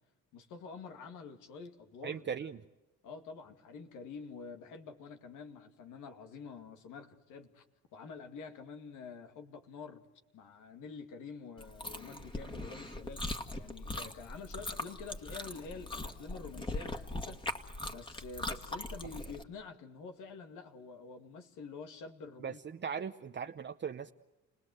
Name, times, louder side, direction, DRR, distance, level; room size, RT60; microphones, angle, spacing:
voice 1, 0.3-2.2 3.0-7.6 7.9-10.0 10.3-13.2 13.5-17.4 17.9-22.6, left 4 dB, 90° left, 6 dB, 2.3 m, -47 dB
voice 2, 2.0-2.6 22.4-24.1, right 7 dB, 35° right, 7 dB, 0.8 m, -39 dB
Chewing mastication, 11.6-19.4, left 2 dB, 15° left, 2.0 m, -40 dB
29.5 x 19.0 x 7.9 m, 1.0 s
cardioid pair, 90°, 30 cm